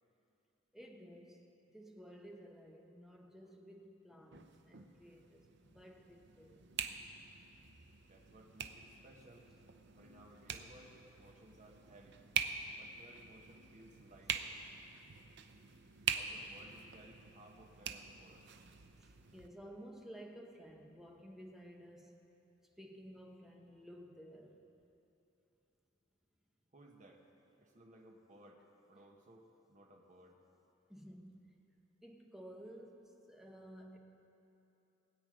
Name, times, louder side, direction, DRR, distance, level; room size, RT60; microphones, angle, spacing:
voice 1, 0.7-1.4 1.7-6.9 7.7-7.8 19.0-22.2 22.8-24.6 30.9-31.5 32.0-34.0, equal, ahead, 1 dB, 1.0 m, -54 dB
sound 1, 4.3-19.5, right 7 dB, 65° right, 0.6 m, -45 dB
voice 2, 8.0-9.5 9.9-12.2 12.8-14.5 16.1-18.5 26.7-27.3 27.6-28.6 28.9-30.4, right 1 dB, 40° right, 1 dB, 1.4 m, -60 dB
20.0 x 8.5 x 5.1 m, 3.0 s
head